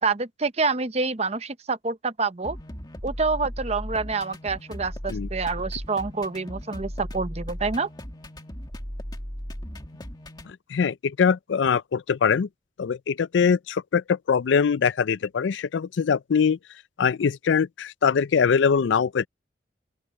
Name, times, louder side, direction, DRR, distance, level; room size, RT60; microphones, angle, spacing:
voice 1, 0.0-2.6 3.0-7.9, right 4 dB, 35° right, 0.8 m, -27 dB
sound 1, 2.4-10.5, equal, 20° left, 2.1 m, -37 dB
voice 2, 10.5-12.5 12.8-16.6 17.0-19.3, left 6 dB, 75° left, 0.4 m, -23 dB
open air
head